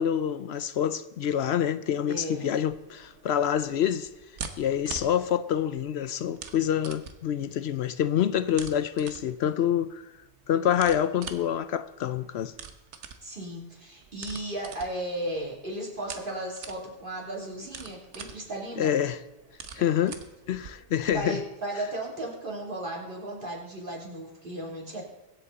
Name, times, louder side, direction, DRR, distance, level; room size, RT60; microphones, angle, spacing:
voice 1, 0.0-4.1 4.6-10.0 10.5-12.5 18.8-19.2 19.8-20.2 20.5-21.4, left 9 dB, 70° left, 0.8 m, -27 dB
voice 2, 2.1-2.5 13.2-19.0 19.7-19.9 21.1-25.0, right 1 dB, 50° right, 3.2 m, -35 dB
sound 1, 2.6-21.2, right 6 dB, 85° right, 1.3 m, -45 dB
23.0 x 8.1 x 4.1 m
omnidirectional pair, 1.2 m